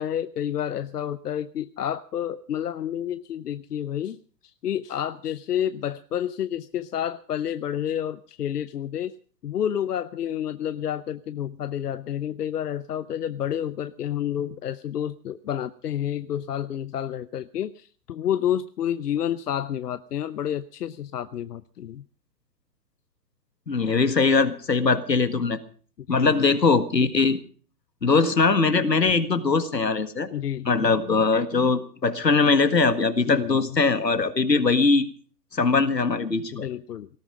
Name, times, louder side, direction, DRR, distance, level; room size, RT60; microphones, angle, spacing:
voice 1, 0.0-4.2 4.4-9.1 9.4-22.0 26.1-26.3 30.3-30.9 33.3-33.8 36.5-37.1, left 10 dB, 70° left, 14 dB, 0.8 m, -29 dB
voice 2, 23.7-25.6 26.1-27.4 28.0-30.3 30.7-35.1 35.5-36.7, left 4 dB, 90° left, 11 dB, 1.8 m, -21 dB
18.5 x 14.5 x 5.1 m, 0.42 s
figure-of-eight pair, 120°, 49 cm